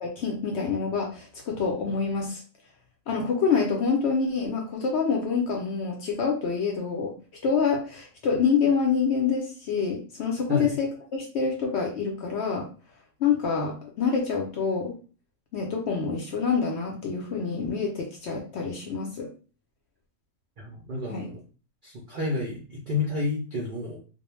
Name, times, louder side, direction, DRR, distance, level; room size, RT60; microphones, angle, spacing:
voice 1, 0.0-2.4 3.1-7.1 7.4-12.7 13.2-14.9 15.5-19.3 21.1-21.3, left 5 dB, 65° left, 0 dB, 0.7 m, -26 dB
voice 2, 20.6-21.3 21.8-24.0, left 3 dB, 65° right, -3 dB, 0.5 m, -30 dB
2.3 x 2.1 x 3.0 m, 0.37 s
omnidirectional pair, 1.5 m